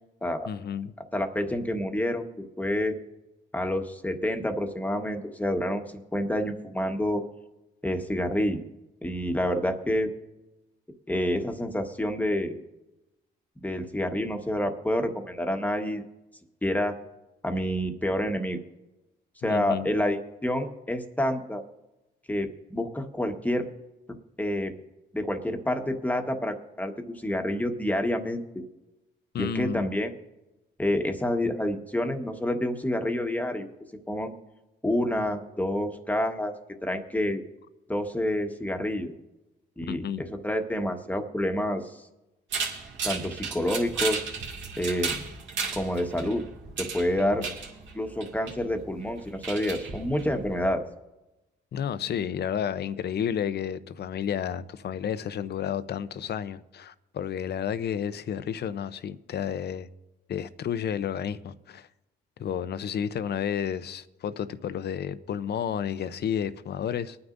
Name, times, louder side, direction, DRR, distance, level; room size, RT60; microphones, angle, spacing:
voice 1, 0.5-0.9 19.4-19.9 29.3-29.9 39.9-40.2 47.2-47.5 51.7-59.9 60.3-61.9 62.4-67.2, left 8 dB, 55° left, 0.7 m, -31 dB
voice 2, 1.1-2.2 2.6-2.9 3.5-5.8 6.1-7.2 7.8-8.6 9.0-10.1 11.1-12.6 13.6-16.0 16.6-16.9 17.4-18.6 19.4-21.6 22.3-23.7 24.4-24.7 25.1-28.4 29.4-30.1 30.8-33.7 34.1-34.3 34.8-36.5 36.8-37.4 37.9-39.1 39.8-41.8 43.0-44.2 44.8-45.2 45.7-46.4 46.8-47.4 47.9-50.8, left 1 dB, 10° left, 1.4 m, -28 dB
sound 1, 42.5-50.7, right 5 dB, 70° right, 2.3 m, -35 dB
24.5 x 9.6 x 2.6 m
cardioid pair, 90°, 20 cm